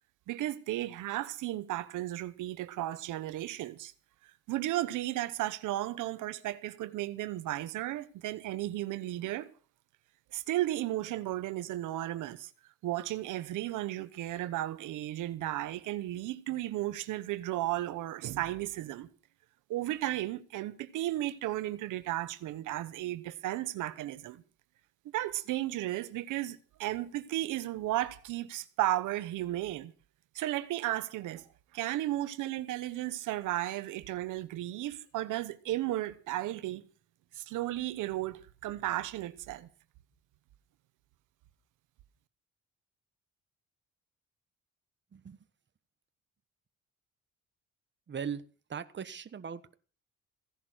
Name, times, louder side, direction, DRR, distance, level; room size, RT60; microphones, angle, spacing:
voice 1, 0.3-3.9 4.5-9.5 10.3-12.5 12.8-19.1 19.7-24.4 25.1-29.9 30.3-31.4 31.7-36.8 37.3-39.7, right 15 dB, 90° right, 1.1 m, -34 dB
voice 2, 48.1-48.4 48.7-49.7, right 7 dB, 40° right, 1.3 m, -39 dB
16.5 x 11.0 x 6.3 m
cardioid pair, 90°, 30 cm